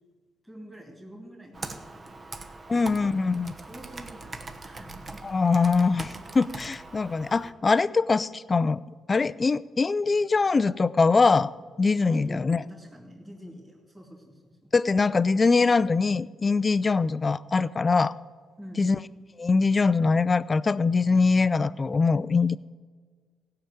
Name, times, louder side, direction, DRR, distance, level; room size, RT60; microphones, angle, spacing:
voice 1, 0.4-3.3 3.6-5.2 12.0-14.6 18.6-18.8, equal, 5° right, -4 dB, 2.7 m, -46 dB
Computer keyboard, 1.5-7.5, right 3 dB, 35° right, 1.1 m, -41 dB
voice 2, 2.7-3.5 5.2-8.8 9.1-11.5 11.8-12.6 14.7-18.2 18.8-19.0 19.4-22.6, left 4 dB, 30° left, 17 dB, 0.4 m, -23 dB
16.0 x 5.7 x 8.9 m, 1.5 s
cardioid pair, 90°, 0 cm